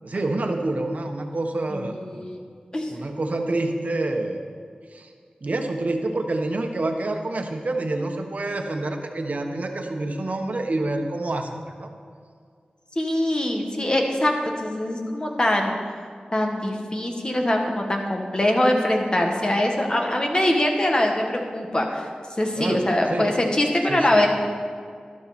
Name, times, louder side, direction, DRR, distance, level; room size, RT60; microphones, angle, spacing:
voice 1, 0.0-2.2 2.9-4.5 4.9-5.1 5.4-11.9 22.6-23.3 23.9-24.2, right 2 dB, 60° right, 4 dB, 1.3 m, -27 dB
voice 2, 1.7-2.4 2.7-2.9 13.0-14.3 14.6-15.8 16.3-22.1 22.4-24.3, left 1 dB, 30° left, 1 dB, 1.8 m, -23 dB
13.0 x 12.0 x 4.3 m, 2.1 s
wide cardioid pair, 70°, 3 cm